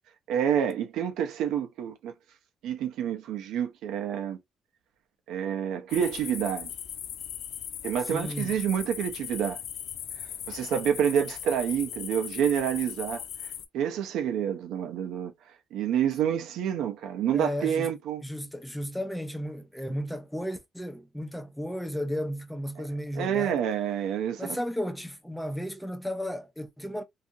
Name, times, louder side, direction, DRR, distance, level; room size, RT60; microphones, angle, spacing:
voice 1, 0.3-2.1 2.6-4.4 5.3-6.7 7.8-9.6 10.5-13.2 13.7-15.3 15.7-18.2 22.8-22.9 23.2-24.6, right 9 dB, 80° right, 0.5 m, -28 dB
sound 1, 5.9-13.7, left 9 dB, 65° left, 0.4 m, -39 dB
voice 2, 8.1-8.6 17.3-17.9 18.2-23.6 24.4-27.0, equal, ahead, 0.4 m, -34 dB
2.7 x 2.4 x 2.5 m
cardioid pair, 170°, 0 cm